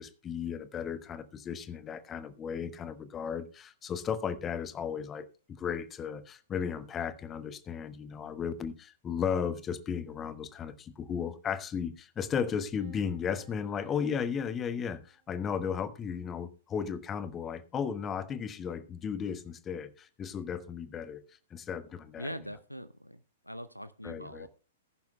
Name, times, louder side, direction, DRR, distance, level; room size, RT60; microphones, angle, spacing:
voice 1, 0.0-21.2 21.5-22.3 24.0-24.5, left 7 dB, 20° left, 0.9 m, -35 dB
sound 1, 12.8-15.7, right 10 dB, 40° right, 2.8 m, -62 dB
voice 2, 22.2-24.5, equal, 90° left, 0.6 m, -42 dB
20.5 x 10.5 x 2.2 m
figure-of-eight pair, 105°, 0 cm